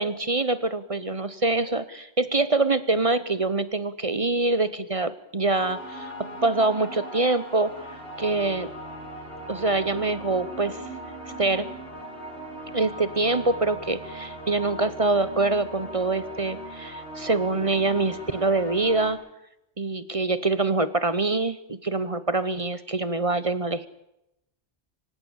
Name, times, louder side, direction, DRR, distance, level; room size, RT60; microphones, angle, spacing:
voice 1, 0.0-6.1 6.4-8.7 9.5-10.8 11.4-11.7 12.7-19.2 19.8-23.9, right 3 dB, 35° right, 14 dB, 1.0 m, -25 dB
sound 1, 5.5-19.1, right 1 dB, 75° left, 8.3 m, -39 dB
sound 2, 5.5-14.8 15.1-15.2, right 5 dB, 80° right, 6.2 m, -48 dB
24.5 x 19.0 x 7.2 m, 0.83 s
omnidirectional pair, 1.1 m